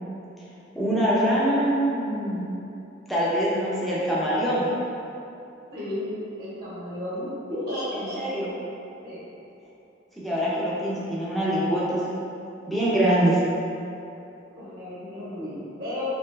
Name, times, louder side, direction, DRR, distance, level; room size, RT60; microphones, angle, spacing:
voice 1, 0.7-2.6 3.1-4.7 7.9-8.5 10.2-12.0 12.7-13.4, equal, ahead, -9 dB, 0.6 m, -24 dB
voice 2, 5.7-6.1 6.4-8.2 9.0-9.2 14.6-16.1, left 1 dB, 55° right, -11 dB, 1.1 m, -33 dB
3.2 x 2.9 x 3.3 m, 2.8 s
head